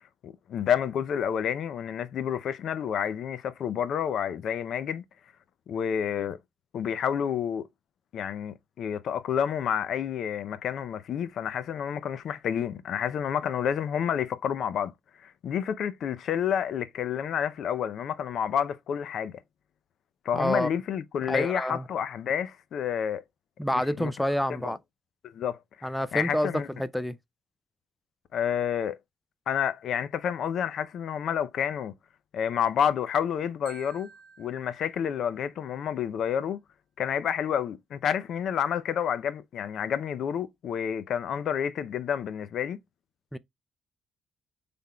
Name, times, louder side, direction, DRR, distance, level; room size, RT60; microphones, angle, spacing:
voice 1, 0.2-5.0 5.7-6.4 6.7-7.7 8.1-14.9 15.2-19.4 20.3-23.2 23.7-24.1 24.5-24.7 25.3-26.7 28.3-28.9 29.5-31.9 32.3-34.1 34.4-36.6 37.0-42.8, left 8 dB, 70° left, 0.5 m, -29 dB
voice 2, 20.3-20.7 21.3-21.8 23.6-24.8 25.8-27.2 43.3-43.4, equal, 5° left, 0.3 m, -28 dB
Marimba xylophone, 33.7-35.7, right 5 dB, 75° right, 1.0 m, -52 dB
5.6 x 3.4 x 2.3 m
cardioid pair, 90°, 0 cm